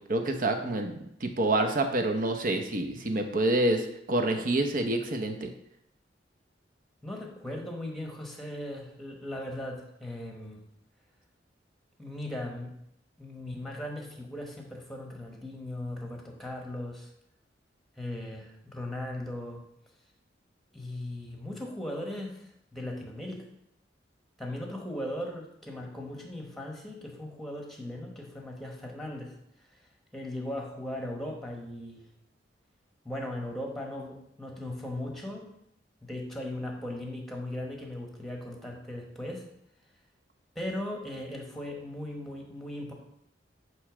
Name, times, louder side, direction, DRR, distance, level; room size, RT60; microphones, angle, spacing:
voice 1, 0.1-0.9 1.2-5.5, right 2 dB, 50° right, 5 dB, 0.8 m, -27 dB
voice 2, 7.0-10.6 12.0-12.7 13.2-17.1 18.0-19.6 20.7-23.4 24.4-29.3 30.1-32.0 33.0-35.5 36.0-39.4 40.5-42.9, left 1 dB, ahead, 0 dB, 1.1 m, -38 dB
9.4 x 3.2 x 4.9 m, 0.78 s
head